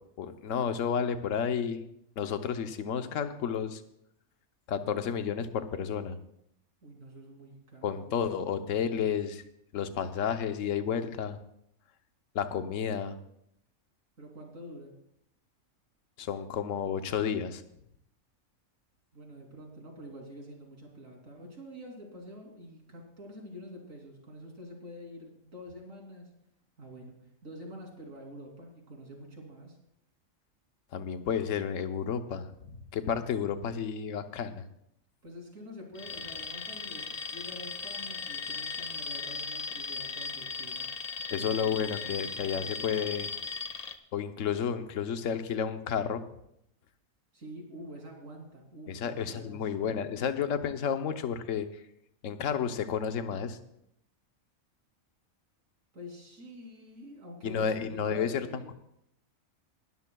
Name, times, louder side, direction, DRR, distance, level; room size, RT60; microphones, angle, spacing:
voice 1, 0.2-1.8 2.2-3.8 4.7-6.2 7.8-9.4 9.7-11.4 12.3-13.2 16.2-17.6 30.9-34.6 41.3-43.3 44.1-46.2 48.9-51.7 52.2-53.6 57.4-58.5, left 7 dB, 70° left, 8 dB, 1.2 m, -31 dB
voice 2, 6.8-8.1 14.2-14.9 19.1-26.3 26.8-27.1 27.4-29.8 35.2-40.9 41.3-42.7 47.3-50.0 55.9-58.7, equal, 70° right, 0 dB, 3.4 m, -47 dB
Alarm, 35.9-44.0, left 5 dB, 40° left, 0.6 m, -37 dB
20.5 x 13.0 x 2.3 m, 0.77 s
omnidirectional pair, 1.4 m